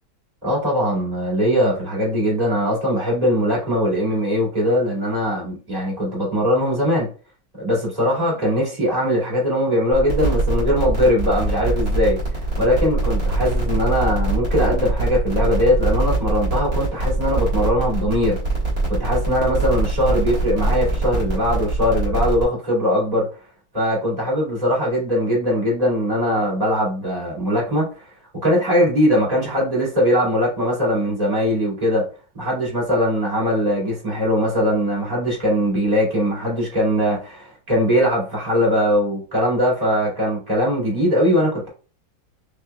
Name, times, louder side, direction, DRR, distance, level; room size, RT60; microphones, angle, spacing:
voice 1, 0.4-7.1 7.6-12.2 12.6-18.4 18.9-23.3 23.7-28.1 28.4-32.0 32.3-41.7, equal, 20° right, -6 dB, 2.5 m, -20 dB
sound 1, 9.9-22.4, right 2 dB, 35° right, 2.2 m, -23 dB
5.7 x 3.6 x 2.3 m, 0.36 s
omnidirectional pair, 1.8 m